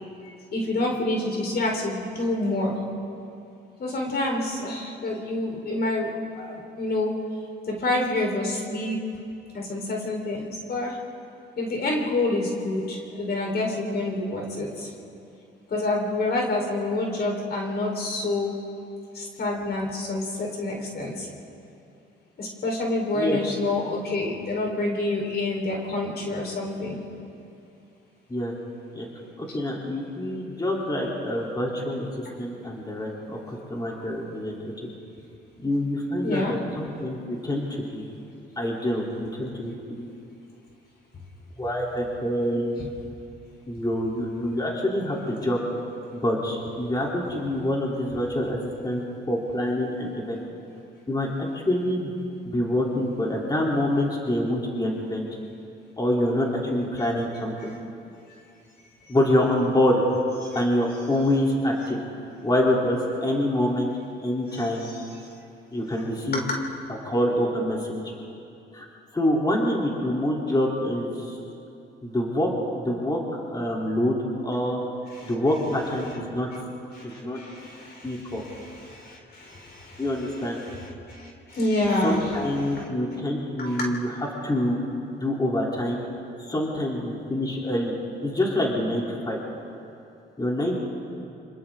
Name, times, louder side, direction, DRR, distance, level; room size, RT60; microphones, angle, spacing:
voice 1, 0.5-2.8 3.8-7.1 7.7-9.0 9.5-11.0 11.6-14.9 15.7-18.6 19.1-21.3 22.4-27.1 36.2-36.5 60.4-60.6 64.5-64.9 66.3-66.4 75.1-75.3 76.9-82.9 83.6-83.9, left 2 dB, 55° left, 0 dB, 4.3 m, -28 dB
voice 2, 29.4-34.6 35.6-37.6 37.9-38.1 38.6-40.1 41.6-42.7 43.7-45.6 46.1-50.4 51.1-52.1 52.4-55.3 56.0-57.7 59.1-60.0 60.5-62.0 62.4-63.9 64.2-64.9 65.7-66.4 67.0-68.0 68.7-68.9 69.1-71.4 72.0-72.5 72.7-74.2 74.4-74.8 75.2-76.5 77.0-77.4 78.0-78.4 80.0-80.6 82.0-84.1 84.4-84.8 85.2-86.0 86.4-87.9 88.2-89.4 90.4-90.7, left 1 dB, 20° left, -3 dB, 3.6 m, -26 dB
28.0 x 26.5 x 3.9 m, 2.6 s
cardioid pair, 90°, 20 cm